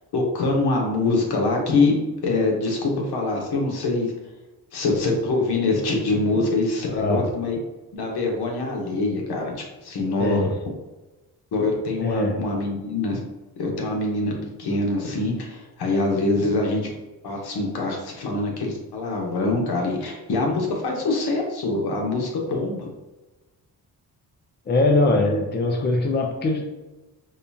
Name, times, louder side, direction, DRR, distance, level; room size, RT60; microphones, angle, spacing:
voice 1, 0.1-1.9 2.2-4.1 4.7-7.6 8.0-9.5 9.8-10.4 11.5-13.2 13.6-14.3 14.6-16.9 17.2-22.9, left 3 dB, 75° left, 0 dB, 1.1 m, -24 dB
voice 2, 6.8-7.2 10.2-10.6 12.0-12.4 24.7-26.6, left 2 dB, 25° left, 3 dB, 0.5 m, -22 dB
5.2 x 2.3 x 2.7 m, 1.1 s
cardioid pair, 115°, 39 cm